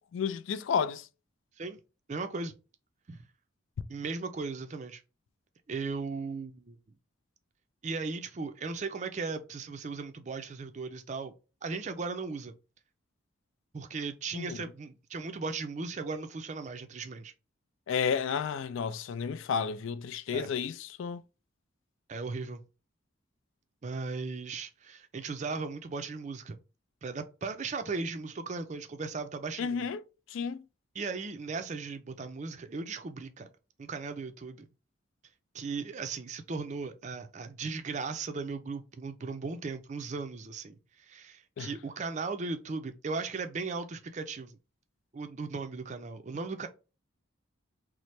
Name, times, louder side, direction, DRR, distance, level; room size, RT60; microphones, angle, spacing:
voice 1, 0.1-1.1 14.3-14.6 17.9-21.2 29.6-30.0 30.3-30.6 41.6-41.7, left 6 dB, 75° left, 0.3 m, -32 dB
voice 2, 2.1-2.6 3.1-3.2 3.9-5.0 5.7-6.8 7.8-11.3 11.6-12.5 13.7-17.3 20.3-20.5 22.1-22.6 23.8-26.6 27.0-29.9 30.9-33.5 33.8-34.7 35.5-44.6 45.1-46.7, right 4 dB, 35° right, 0.4 m, -37 dB
3.1 x 2.0 x 4.1 m
head